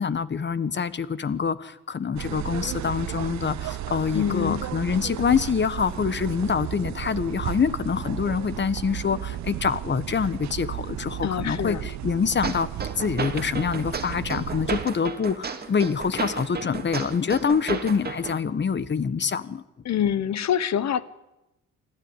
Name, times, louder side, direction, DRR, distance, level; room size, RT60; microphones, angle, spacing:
voice 1, 0.0-12.7 13.0-19.6, left 6 dB, 35° left, 16 dB, 1.4 m, -26 dB
sound 1, 2.2-14.9, right 13 dB, 65° right, 0.8 m, -34 dB
voice 2, 4.1-4.6 11.2-11.9 19.8-21.0, left 9 dB, 60° left, 17 dB, 1.4 m, -25 dB
sound 2, 12.4-18.4, right 5 dB, 30° right, 2.5 m, -33 dB
25.5 x 14.5 x 9.9 m, 0.95 s
cardioid pair, 90°, 30 cm